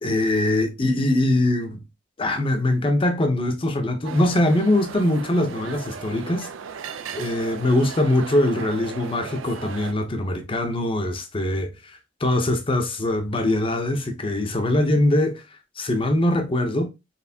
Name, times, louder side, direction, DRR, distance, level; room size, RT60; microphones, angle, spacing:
voice 1, 0.0-1.8 2.2-6.5 7.1-15.4 15.8-16.9, left 1 dB, 30° left, 0.7 m, -22 dB
sound 1, 4.0-9.9, right 6 dB, 85° right, 0.4 m, -37 dB
4.2 x 3.1 x 2.7 m
head